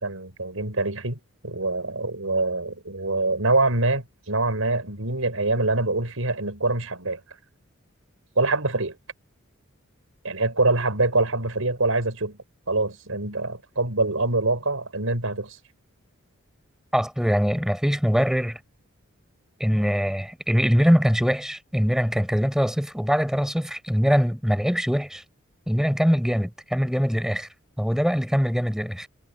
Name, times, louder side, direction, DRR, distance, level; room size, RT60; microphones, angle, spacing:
voice 1, 0.0-7.2 8.4-9.0 10.2-12.4 12.7-15.6, right 2 dB, 85° right, 5.2 m, -25 dB
voice 2, 16.9-18.6 19.6-25.2 25.7-27.5 27.8-29.1, equal, 5° right, 4.1 m, -22 dB
head